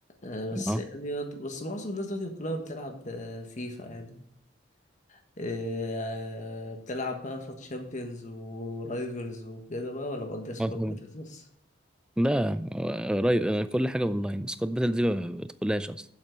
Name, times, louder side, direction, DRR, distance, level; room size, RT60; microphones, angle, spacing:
voice 1, 0.2-4.2 5.1-11.5, left 1 dB, 40° left, 4 dB, 1.4 m, -36 dB
voice 2, 10.6-11.0 12.2-16.1, equal, 5° right, 13 dB, 0.4 m, -27 dB
7.8 x 7.4 x 5.2 m, 0.73 s
head